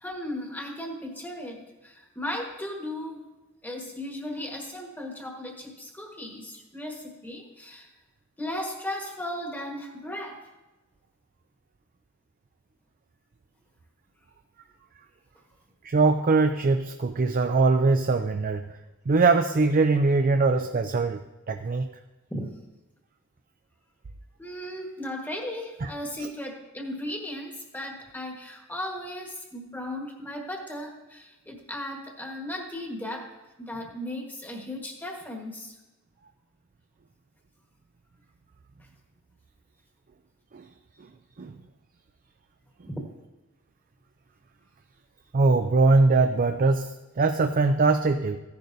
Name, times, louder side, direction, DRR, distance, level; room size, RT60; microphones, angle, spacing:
voice 1, 0.0-3.2 3.6-7.9 8.4-10.5 22.3-22.5 24.4-33.3 33.6-35.8 42.9-43.1, left 1 dB, 10° left, 1 dB, 1.4 m, -36 dB
voice 2, 15.8-18.6 19.1-21.2 21.5-21.9 25.8-25.9 26.2-26.3 40.5-40.6 41.0-41.1 41.4-41.6 45.3-48.4, right 3 dB, 40° right, 6 dB, 0.4 m, -22 dB
15.0 x 10.5 x 2.7 m, 1.1 s
head